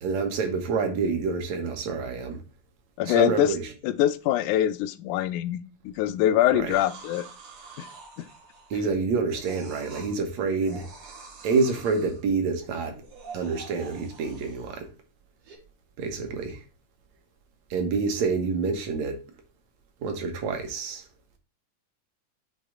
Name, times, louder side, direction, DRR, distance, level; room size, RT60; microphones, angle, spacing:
voice 1, 0.0-2.4 3.0-3.7 6.5-6.8 8.7-10.9 11.4-13.0 13.3-14.9 16.0-16.6 17.7-19.2 20.0-21.0, right 4 dB, 65° right, 2.4 m, -27 dB
voice 2, 3.0-3.6 3.8-7.3 7.8-7.9, left 12 dB, 90° left, 2.1 m, -24 dB
sound 1, 6.7-8.9 9.3-10.1 10.6-12.2 12.9-14.8 15.4-15.6, right 4 dB, 85° right, 3.5 m, -46 dB
8.4 x 3.5 x 3.7 m
omnidirectional pair, 3.4 m